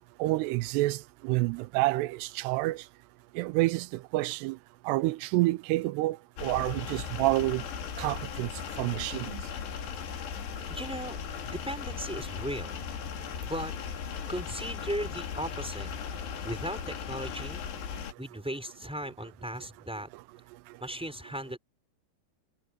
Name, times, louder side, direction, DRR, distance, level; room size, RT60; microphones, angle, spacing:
voice 1, 0.2-2.8 3.4-4.6 4.9-7.6 8.0-8.5 8.8-9.4, right 19 dB, 85° right, 2.7 m, -28 dB
sound 1, 6.4-18.1, left 7 dB, 75° left, 4.9 m, -37 dB
voice 2, 10.7-11.2 11.4-12.8 13.4-13.7 14.3-15.9 16.4-17.6 18.2-20.1 20.8-21.6, right 1 dB, ahead, 5.0 m, -37 dB
omnidirectional pair, 4.8 m